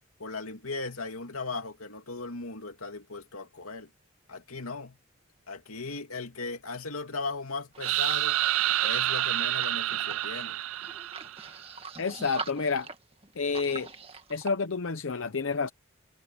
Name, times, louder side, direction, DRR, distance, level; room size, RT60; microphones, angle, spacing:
voice 1, 0.2-3.9 4.3-5.0 5.5-8.4 8.8-10.6, left 3 dB, 90° left, 2.8 m, -37 dB
sound 1, 7.7-14.5, right 4 dB, 25° right, 1.9 m, -44 dB
sound 2, 7.8-11.6, right 14 dB, 75° right, 0.4 m, -28 dB
voice 2, 12.0-12.9 13.4-13.9 14.3-15.7, left 4 dB, 70° left, 0.7 m, -29 dB
head